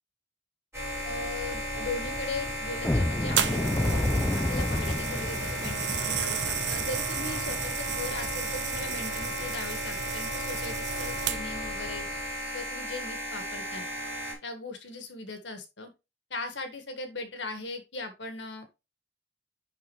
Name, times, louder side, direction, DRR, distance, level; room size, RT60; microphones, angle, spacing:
sound 1, 0.7-14.3, equal, 15° right, 4.8 m, -35 dB
voice 1, 1.0-4.0 4.3-12.1 12.5-13.8 14.4-15.9 16.3-18.7, left 3 dB, 75° left, 7 dB, 1.7 m, -38 dB
sound 2, 2.8-9.6 9.9-10.1 10.5-10.7 11.1-11.3, left 1 dB, 10° left, 0.3 m, -31 dB
sound 3, 3.4-11.7 12.4-12.6, right 9 dB, 70° right, 0.8 m, -34 dB
10.5 x 4.4 x 3.2 m, 0.26 s
head